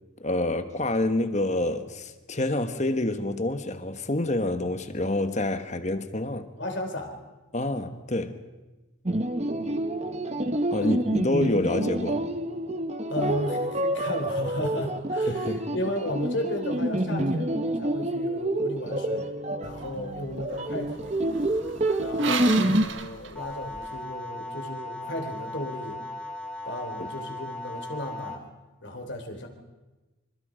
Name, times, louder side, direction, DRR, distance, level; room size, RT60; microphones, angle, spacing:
voice 1, 0.2-6.5 7.5-8.4 10.7-12.3 15.3-15.7 27.0-27.1, left 1 dB, 35° left, 1.4 m, -27 dB
voice 2, 6.6-7.2 9.5-9.8 10.8-10.9 13.1-21.2 22.0-26.0 26.7-28.4 28.8-29.5, left 1 dB, 60° left, 3.6 m, -34 dB
sound 1, 9.1-22.8, right 1 dB, 30° right, 1.1 m, -28 dB
sound 2, 19.6-24.0, right 6 dB, 65° right, 1.5 m, -36 dB
sound 3, 23.4-28.4, left 2 dB, 5° left, 2.6 m, -37 dB
26.0 x 26.0 x 5.2 m
head